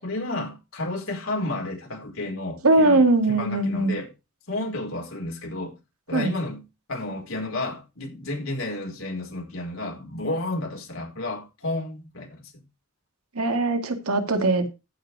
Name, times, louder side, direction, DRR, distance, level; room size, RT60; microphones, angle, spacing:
voice 1, 0.0-4.1 4.5-5.8 6.1-6.6 6.9-12.5, left 2 dB, 70° left, 4.6 m, -31 dB
voice 2, 2.6-3.9 6.1-6.3 13.4-14.7, right 2 dB, 85° right, 2.1 m, -20 dB
14.5 x 5.4 x 4.7 m
head